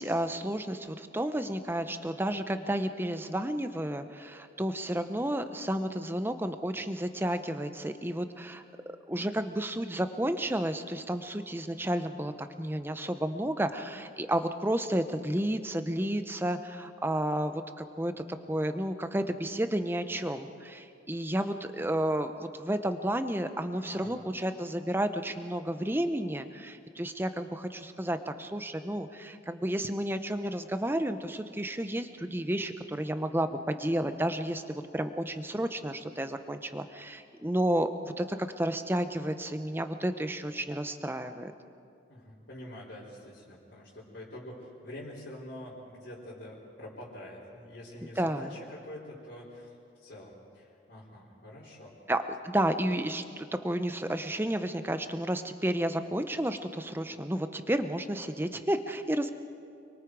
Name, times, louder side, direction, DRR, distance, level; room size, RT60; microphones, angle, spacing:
voice 1, 0.0-8.6 9.1-12.3 12.6-41.5 48.2-48.5 52.1-59.3, right 1 dB, 10° right, 9 dB, 0.8 m, -31 dB
voice 2, 23.8-24.2 42.1-51.9, left 1 dB, 60° left, -9 dB, 4.2 m, -46 dB
30.0 x 22.5 x 4.8 m, 2.5 s
head